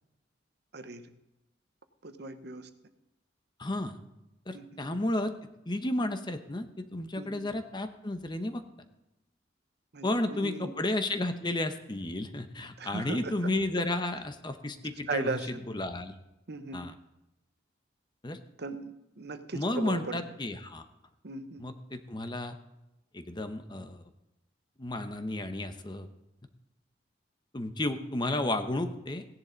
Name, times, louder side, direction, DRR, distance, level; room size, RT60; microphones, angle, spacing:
voice 1, 0.7-1.1 2.0-2.7 4.5-4.8 7.2-7.4 9.9-10.7 12.8-13.8 15.1-15.6 16.5-16.8 18.6-20.2 21.2-21.6, right 3 dB, 60° right, 10 dB, 1.0 m, -38 dB
voice 2, 3.6-4.0 4.5-5.3 5.7-8.6 10.0-16.1 16.7-16.9 18.2-18.4 19.5-20.8 21.6-22.6 23.1-24.0 24.8-26.1 27.5-29.2, left 1 dB, 25° left, 9 dB, 0.9 m, -32 dB
16.5 x 10.5 x 4.0 m, 0.93 s
head